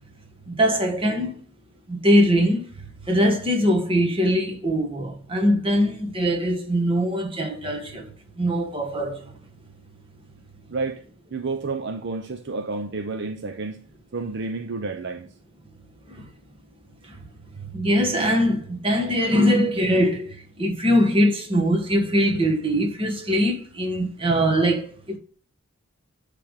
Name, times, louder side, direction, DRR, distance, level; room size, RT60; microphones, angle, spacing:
voice 1, 0.5-1.3 1.9-9.4 16.1-16.3 17.0-17.3 17.6-25.2, equal, 25° right, 1.4 m, -22 dB
voice 2, 10.7-11.0 11.3-13.9 14.1-15.3, right 3 dB, 60° right, 0.7 m, -30 dB
10.0 x 3.4 x 6.5 m
head